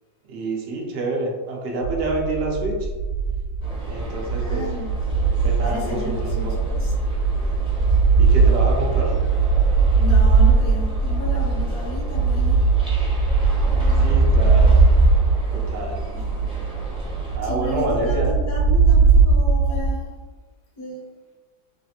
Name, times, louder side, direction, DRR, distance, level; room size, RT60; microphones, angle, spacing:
voice 1, 0.3-2.9 3.8-4.7 5.4-6.5 8.2-9.1 14.0-14.9 15.5-16.1 17.3-18.3, right 2 dB, 75° right, -1 dB, 0.6 m, -27 dB
sound 1, 1.8-20.1, right 4 dB, 80° left, 1.3 m, -19 dB
sound 2, 3.6-17.4, right 1 dB, 10° right, 0.3 m, -38 dB
voice 2, 4.4-4.9 5.6-6.9 10.0-12.6 16.1-16.2 17.4-20.1 20.8-21.0, equal, 65° left, -4 dB, 1.1 m, -33 dB
3.2 x 2.4 x 2.7 m, 1.3 s
omnidirectional pair, 1.8 m